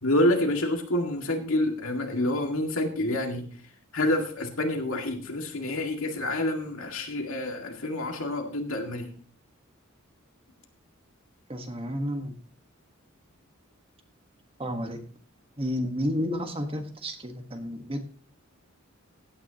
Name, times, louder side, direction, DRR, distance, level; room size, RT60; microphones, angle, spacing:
voice 1, 0.0-3.5 3.9-9.1, left 1 dB, 75° left, 3 dB, 2.0 m, -27 dB
voice 2, 11.5-12.4 14.6-15.0 15.6-18.0, equal, 25° right, 6 dB, 1.4 m, -31 dB
16.0 x 9.7 x 2.9 m, 0.42 s
head